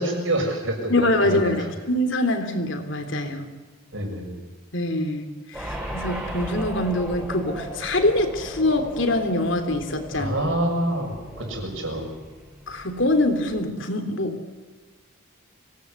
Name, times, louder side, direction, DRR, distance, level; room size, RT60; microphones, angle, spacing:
voice 1, 0.0-1.5 3.9-4.4 10.1-12.1, right 1 dB, 70° right, 2 dB, 7.2 m, -27 dB
voice 2, 0.9-3.5 4.7-10.3 12.7-14.4, left 1 dB, 65° left, 6 dB, 3.3 m, -24 dB
sound 1, 5.5-13.7, right 1 dB, 10° right, 7.3 m, -37 dB
26.0 x 19.0 x 8.4 m, 1.4 s
head